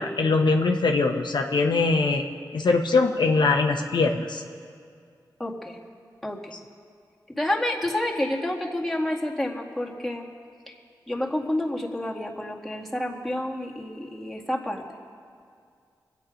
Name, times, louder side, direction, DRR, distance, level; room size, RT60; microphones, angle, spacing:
voice 1, 0.0-2.2 2.5-4.4, left 3 dB, 75° left, 2 dB, 0.9 m, -22 dB
voice 2, 5.4-5.8 6.2-6.5 7.4-10.3 11.1-14.8, left 1 dB, 5° left, -2 dB, 2.0 m, -29 dB
23.0 x 8.3 x 5.1 m, 2.2 s
cardioid pair, 55°, 8 cm